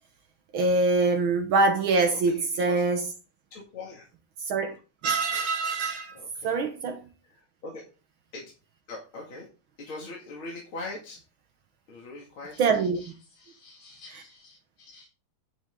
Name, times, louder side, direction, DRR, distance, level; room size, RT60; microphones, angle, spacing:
voice 1, 0.5-3.0 4.5-4.8 5.0-6.2 6.4-7.1 12.6-13.0, right 3 dB, 70° right, 1.9 m, -24 dB
voice 2, 2.2-2.9 3.5-4.1 6.1-6.6 7.2-7.8 8.3-8.5 8.9-9.5 9.8-11.2 11.9-15.1, left 3 dB, 75° left, 3.2 m, -42 dB
9.4 x 8.9 x 3.8 m
omnidirectional pair, 2.3 m